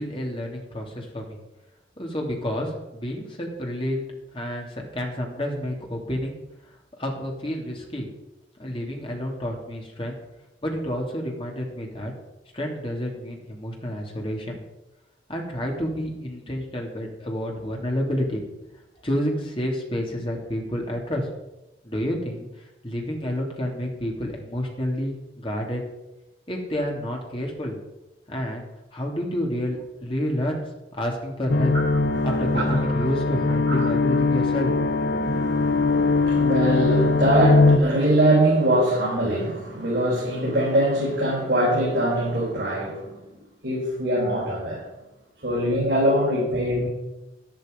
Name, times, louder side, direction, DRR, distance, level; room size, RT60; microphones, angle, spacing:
voice 1, 0.0-1.4 2.0-4.1 4.3-6.4 7.0-8.1 8.6-10.2 10.6-12.1 12.5-14.6 15.3-18.4 19.0-21.3 21.8-22.5 22.8-25.8 26.5-27.8 28.3-28.6 28.9-30.7 30.9-31.7 32.2-34.9, equal, 30° left, 0 dB, 2.7 m, -29 dB
sound 1, 31.5-37.8, left 3 dB, 55° left, 0.8 m, -21 dB
voice 2, 32.2-32.8 33.7-33.9 35.2-43.2 43.6-44.8 45.4-46.9, right 1 dB, 60° right, -7 dB, 4.9 m, -23 dB
12.0 x 11.0 x 5.2 m, 0.97 s
head